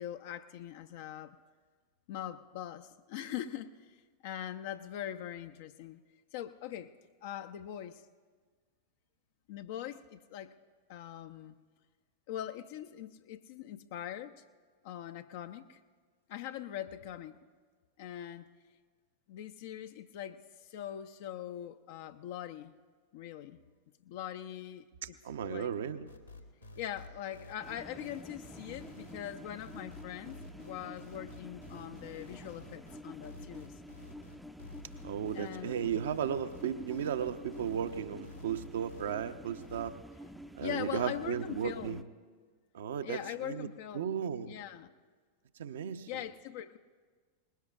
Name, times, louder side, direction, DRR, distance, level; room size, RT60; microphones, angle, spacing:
voice 1, 0.0-1.4 2.1-4.0 4.2-6.0 6.3-6.9 7.2-8.0 9.5-10.5 10.9-11.6 12.3-14.4 14.8-15.8 16.3-17.4 18.0-18.5 19.3-22.7 23.1-23.6 24.0-25.7 26.8-33.7 35.3-35.9 40.6-42.0 43.0-44.9 46.1-46.8, left 11 dB, 50° left, 8 dB, 0.5 m, -42 dB
voice 2, 25.2-26.1 35.0-39.9 40.6-42.0 42.7-43.7 43.9-44.5 45.6-46.1, right 8 dB, 60° right, 10 dB, 0.7 m, -35 dB
sound 1, 26.1-39.1 39.6-39.8, left 2 dB, 85° left, 1.4 m, -51 dB
sound 2, 27.6-42.0, equal, ahead, 0.5 m, -49 dB
23.0 x 20.0 x 2.4 m, 1.5 s
figure-of-eight pair, 90°, 0 cm